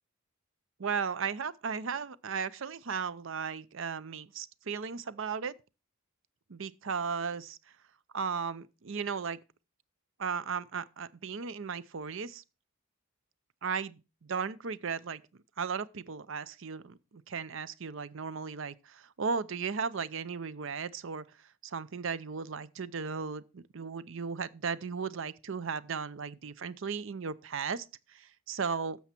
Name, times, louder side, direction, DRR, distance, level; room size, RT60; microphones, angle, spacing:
voice 1, 0.8-5.5 6.5-7.6 8.1-9.4 10.2-12.4 13.6-15.2 15.6-21.2 21.6-29.0, right 5 dB, 60° right, 0.6 m, -36 dB
13.0 x 7.1 x 4.3 m
head